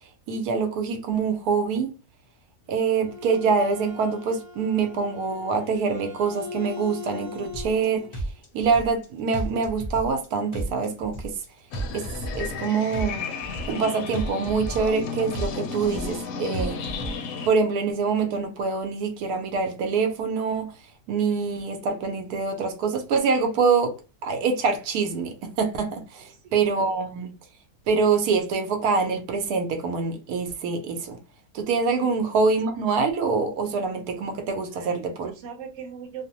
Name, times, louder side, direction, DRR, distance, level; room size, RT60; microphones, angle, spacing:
voice 1, 0.3-1.9 2.7-8.1 8.5-11.3 11.9-12.0 12.3-13.3 13.7-16.8 17.5-20.7 21.1-23.9 24.2-27.3 27.9-31.2 31.5-35.3, right 5 dB, 90° right, 1.1 m, -25 dB
Bowed string instrument, 2.6-8.2, left 4 dB, 35° right, 0.9 m, -40 dB
sound 1, 7.5-7.9 8.1-9.1 9.3-10.3 10.5-11.5 11.7-12.7 12.9-13.9 14.1-15.1 15.3-16.3 16.5-17.1, right 1 dB, 40° left, 0.6 m, -32 dB
sound 2, 11.7-17.5, left 5 dB, 70° left, 0.8 m, -34 dB
voice 2, 26.3-26.6 32.0-32.2 34.7-36.3, right 6 dB, 60° right, 0.9 m, -40 dB
2.8 x 2.0 x 2.7 m
omnidirectional pair, 1.6 m